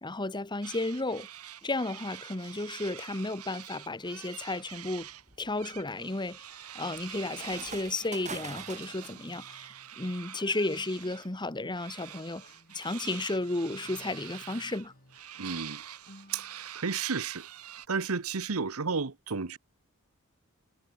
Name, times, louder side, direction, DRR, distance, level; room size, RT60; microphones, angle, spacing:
voice 1, 0.0-1.3 1.6-5.1 5.4-6.5 6.7-9.7 10.0-12.4 12.7-14.9, left 2 dB, 20° left, 1.3 m, -33 dB
sound 1, 0.6-5.2 5.6-11.3 11.7-17.9, right 11 dB, 90° right, 3.5 m, -46 dB
sound 2, 4.0-4.1 4.7-9.3, right 5 dB, 35° right, 5.1 m, -46 dB
sound 3, 7.3-16.9, left 1 dB, 40° left, 6.2 m, -58 dB
voice 2, 15.4-15.8 16.3-17.4 17.9-19.6, right 5 dB, 70° right, 1.0 m, -32 dB
head